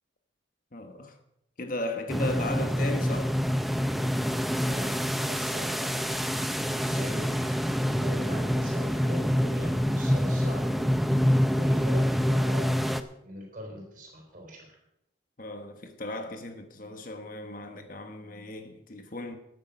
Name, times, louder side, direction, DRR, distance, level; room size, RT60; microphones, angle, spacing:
voice 1, 0.7-1.2 1.6-3.3 6.6-7.0 15.4-19.4, left 1 dB, 45° left, 1.2 m, -36 dB
sound 1, 2.1-13.0, equal, ahead, 0.5 m, -26 dB
voice 2, 4.6-4.9 5.2-6.1 6.9-10.8 11.5-12.6 13.2-14.7, equal, 45° right, 4.5 m, -41 dB
13.5 x 9.4 x 5.5 m
head